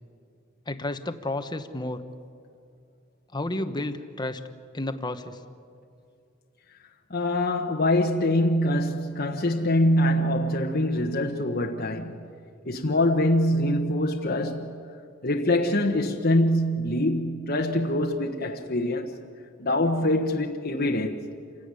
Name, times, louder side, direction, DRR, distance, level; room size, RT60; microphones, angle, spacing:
voice 1, 0.7-2.0 3.3-4.4 4.7-5.4, left 2 dB, 20° left, 1.1 m, -31 dB
voice 2, 7.1-12.2 12.6-14.7 15.2-19.2 19.6-21.2, left 1 dB, 45° left, 1.3 m, -24 dB
28.0 x 17.0 x 9.8 m
head